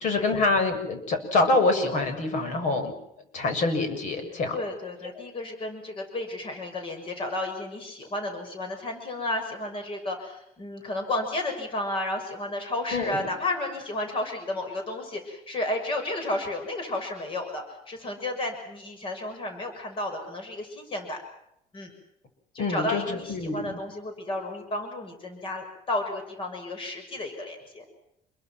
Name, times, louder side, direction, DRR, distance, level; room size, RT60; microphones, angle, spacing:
voice 1, 0.0-2.9 3.3-4.6 12.9-13.2 22.6-23.8, left 3 dB, 50° left, 7 dB, 7.0 m, -25 dB
voice 2, 4.5-21.2 21.7-21.9 22.5-27.8, left 2 dB, 30° left, 6 dB, 6.6 m, -32 dB
28.5 x 23.0 x 6.1 m, 0.77 s
cardioid pair, 160°, 16 cm